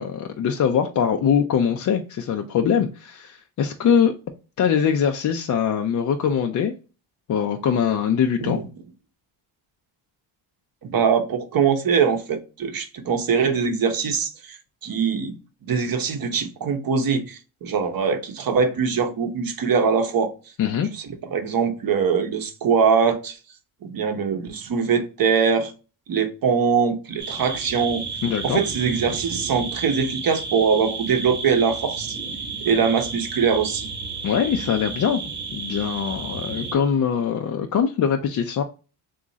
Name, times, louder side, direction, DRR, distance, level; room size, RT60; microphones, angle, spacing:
voice 1, 0.0-4.1 4.6-6.7 7.3-8.6 20.6-20.9 28.2-28.6 34.2-35.2 35.5-38.6, left 7 dB, 45° left, 0.4 m, -22 dB
voice 2, 10.8-14.6 14.8-15.4 15.7-20.3 20.9-21.1 21.3-23.4 23.8-25.7 26.1-28.0 28.4-32.2 32.6-33.9, right 6 dB, 50° right, 0.7 m, -22 dB
sound 1, 27.2-36.7, right 4 dB, 25° right, 1.1 m, -32 dB
2.9 x 2.4 x 3.8 m
cardioid pair, 80°, 47 cm